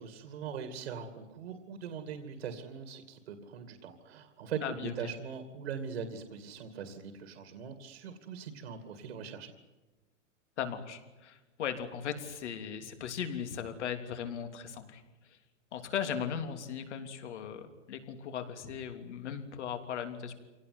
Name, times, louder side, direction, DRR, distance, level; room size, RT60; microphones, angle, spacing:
voice 1, 0.0-9.5, right 6 dB, 60° right, 8 dB, 2.5 m, -41 dB
voice 2, 4.6-5.1 10.6-15.0 15.3-15.4 15.7-20.3, left 8 dB, 60° left, 7 dB, 3.3 m, -38 dB
26.0 x 18.0 x 9.6 m, 1.1 s
supercardioid pair, 175°, 38 cm